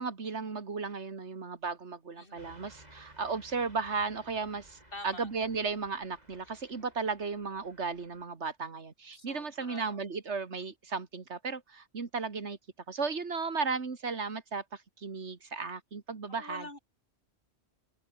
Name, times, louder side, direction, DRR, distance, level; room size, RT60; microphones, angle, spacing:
voice 1, 0.0-12.6 12.9-16.7, right 4 dB, 85° right, 2.3 m, -35 dB
voice 2, 2.2-2.5 4.9-5.3 6.5-6.9 9.1-10.0 16.3-16.8, left 2 dB, 55° left, 4.2 m, -47 dB
Car passing by / Truck, 2.4-8.3, right 1 dB, 40° right, 6.6 m, -58 dB
omnidirectional pair, 1.1 m